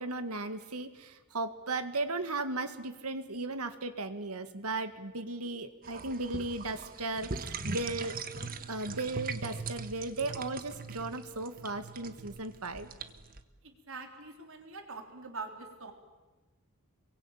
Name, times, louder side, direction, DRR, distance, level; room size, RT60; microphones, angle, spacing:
voice 1, 0.0-8.2 8.7-12.9, right 2 dB, 85° right, 9 dB, 2.0 m, -36 dB
sound 1, 5.8-13.4, right 4 dB, 40° right, 1.3 m, -41 dB
voice 2, 13.6-15.9, right 3 dB, 60° right, 4 dB, 3.6 m, -44 dB
27.0 x 23.5 x 9.0 m, 1.2 s
head